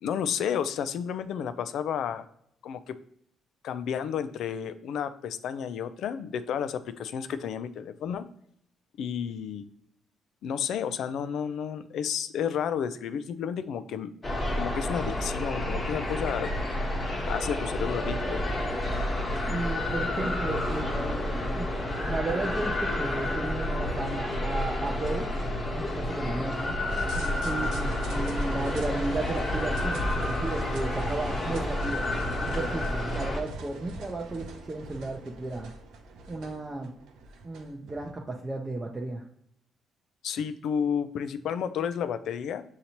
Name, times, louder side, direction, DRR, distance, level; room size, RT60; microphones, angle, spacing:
voice 1, 0.0-2.3 2.6-3.0 3.6-8.3 9.0-9.6 10.4-14.1 14.5-16.5 17.3-18.4 40.2-42.6, left 8 dB, 75° left, 12 dB, 0.3 m, -31 dB
sound 1, 14.2-33.4, left 1 dB, 30° left, 1.2 m, -30 dB
voice 2, 19.5-21.7 22.1-25.3 25.7-26.8 27.2-32.1 32.4-35.7 36.3-36.9 37.4-39.2, right 2 dB, 25° right, 0 dB, 0.6 m, -34 dB
sound 2, 26.9-38.1, right 1 dB, 85° right, 0.6 m, -39 dB
6.4 x 2.8 x 2.9 m, 0.71 s
cardioid pair, 90°, 0 cm